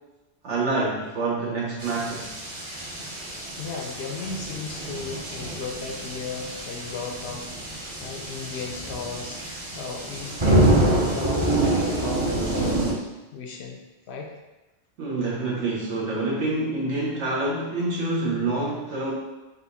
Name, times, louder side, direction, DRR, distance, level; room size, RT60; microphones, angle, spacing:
voice 1, 0.4-2.4 15.0-19.1, right 2 dB, 75° right, -3 dB, 1.3 m, -27 dB
sound 1, 1.8-12.9, right 1 dB, 30° right, 0.6 m, -26 dB
voice 2, 3.6-13.0 13.3-13.8 14.1-14.3, left 4 dB, 70° left, 1 dB, 0.8 m, -35 dB
4.2 x 2.5 x 4.0 m, 1.1 s
omnidirectional pair, 1.2 m